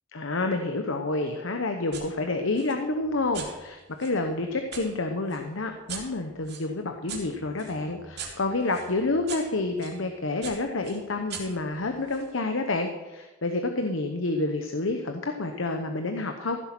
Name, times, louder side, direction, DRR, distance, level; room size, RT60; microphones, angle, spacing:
voice 1, 0.1-16.6, left 2 dB, 85° left, 5 dB, 1.0 m, -29 dB
sound 1, 1.9-2.1 2.5-4.9 5.3-10.0 10.4-12.3, right 6 dB, 55° right, 3.6 m, -42 dB
15.0 x 8.1 x 6.0 m, 1.1 s
head